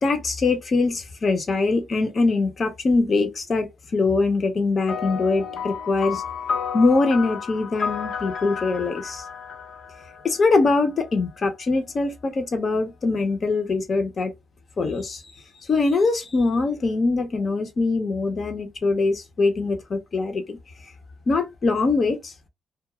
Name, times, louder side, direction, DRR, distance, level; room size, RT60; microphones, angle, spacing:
voice 1, 0.0-6.2 6.7-9.2 10.2-14.3 14.8-15.2 15.7-20.6 21.3-22.5, left 3 dB, 50° left, 0.9 m, -23 dB
sound 1, 4.9-10.7, left 6 dB, 70° left, 0.5 m, -31 dB
2.4 x 2.1 x 3.0 m
supercardioid pair, 65°, 0 cm